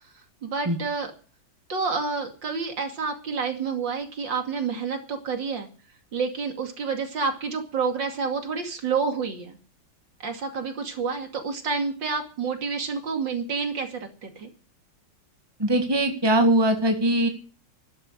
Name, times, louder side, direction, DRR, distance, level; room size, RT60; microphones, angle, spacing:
voice 1, 0.4-1.1 1.7-5.7 6.1-9.6 10.2-14.5, right 5 dB, 85° right, 5 dB, 3.1 m, -29 dB
voice 2, 15.6-17.3, right 1 dB, 15° right, 5 dB, 1.9 m, -21 dB
13.0 x 11.0 x 7.9 m, 0.39 s
omnidirectional pair, 2.0 m